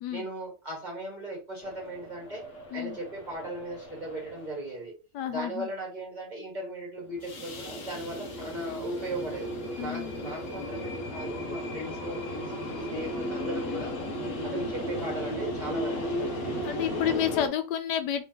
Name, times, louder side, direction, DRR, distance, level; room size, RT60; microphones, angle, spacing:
voice 1, 0.1-2.4 2.7-4.9 5.2-9.5 9.8-14.0 14.4-16.5, right 1 dB, 25° right, -3 dB, 1.8 m, -38 dB
sound 1, 1.6-4.8 7.1-17.5, left 1 dB, 55° left, 1.1 m, -35 dB
voice 2, 5.1-5.7 9.8-10.1 16.6-18.2, left 9 dB, 90° left, 9 dB, 1.2 m, -30 dB
3.5 x 3.4 x 2.8 m, 0.31 s
omnidirectional pair, 1.8 m